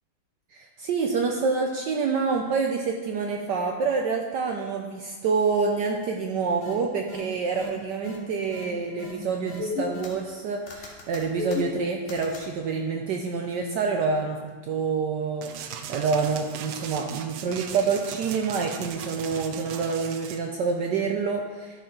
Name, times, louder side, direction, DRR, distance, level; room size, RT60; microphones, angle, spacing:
voice 1, 0.6-14.4 14.7-21.8, right 5 dB, 75° right, 2 dB, 1.0 m, -27 dB
sound 1, 6.6-6.7 7.1-7.2 7.6-7.7 8.0-8.2 8.5-8.6 9.0-9.1 9.5-10.4 10.7-12.5, left 4 dB, 70° left, 2.0 m, -34 dB
Scratching zombie, 15.4-20.4, right 8 dB, 90° right, 1.5 m, -38 dB
12.5 x 4.4 x 3.9 m, 1.3 s
omnidirectional pair, 2.4 m